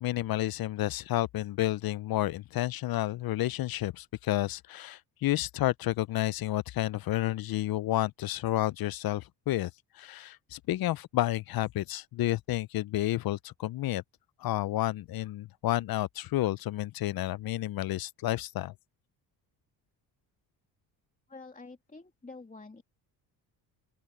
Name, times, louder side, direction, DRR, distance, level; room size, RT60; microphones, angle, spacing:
voice 1, 0.0-9.7 10.0-14.0 14.4-18.7, left 15 dB, 55° left, 0.6 m, -30 dB
voice 2, 21.3-22.8, left 3 dB, 20° left, 2.6 m, -48 dB
open air
supercardioid pair, 75°, 44 cm